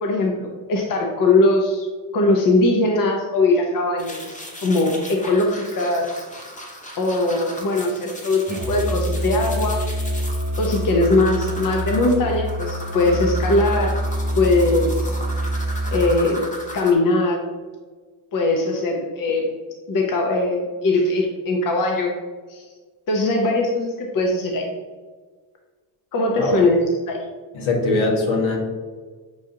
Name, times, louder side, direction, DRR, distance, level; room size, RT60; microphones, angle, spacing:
voice 1, 0.0-1.9 2.1-4.3 4.6-6.1 7.0-9.8 10.6-14.0 14.4-15.1 15.9-16.4 16.7-17.4 18.3-19.5 19.9-22.1 22.5-22.6 23.1-24.7 26.1-26.8 27.1-27.3, left 2 dB, 45° left, 1 dB, 0.7 m, -20 dB
sound 1, 4.0-16.9, equal, 15° left, 0.8 m, -37 dB
Musical instrument, 8.5-16.3, right 1 dB, 20° right, 0.5 m, -26 dB
voice 2, 27.5-28.6, left 3 dB, 70° left, -1 dB, 1.2 m, -21 dB
6.3 x 2.5 x 2.7 m, 1.4 s
cardioid pair, 85°, 48 cm